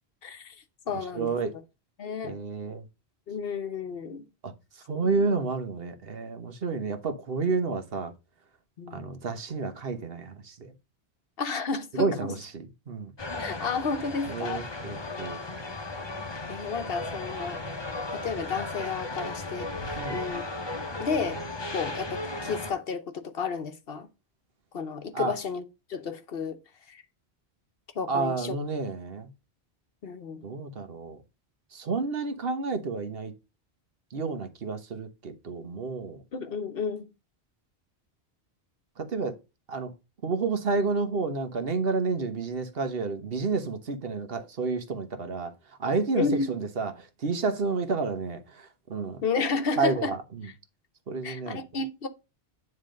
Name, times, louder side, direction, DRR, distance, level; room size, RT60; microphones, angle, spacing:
voice 1, 0.2-0.5 0.9-1.3 2.0-2.4 3.3-4.2 5.0-5.3 8.8-9.1 11.4-12.3 13.4-14.6 15.5-15.6 16.5-17.6 18.1-20.4 21.0-21.4 21.7-24.1 24.7-25.6 25.9-26.6 26.9-27.0 27.9-28.6 30.0-30.4 36.3-37.1 46.2-46.5 49.2-50.1 51.2-52.1, left 5 dB, 60° left, 1.0 m, -32 dB
voice 2, 1.1-1.5 2.2-2.8 4.4-4.5 4.9-8.1 8.9-10.7 11.9-13.1 14.3-15.4 20.0-20.2 25.1-25.3 28.1-29.3 30.4-31.2 31.7-33.3 34.1-36.2 39.0-39.4 39.7-39.9 40.2-45.5 45.8-49.2 49.8-50.5 51.1-51.6, right 4 dB, 60° right, 1.2 m, -30 dB
sound 1, 13.2-22.7, left 2 dB, 25° left, 0.9 m, -35 dB
9.6 x 3.3 x 5.1 m
omnidirectional pair, 1.1 m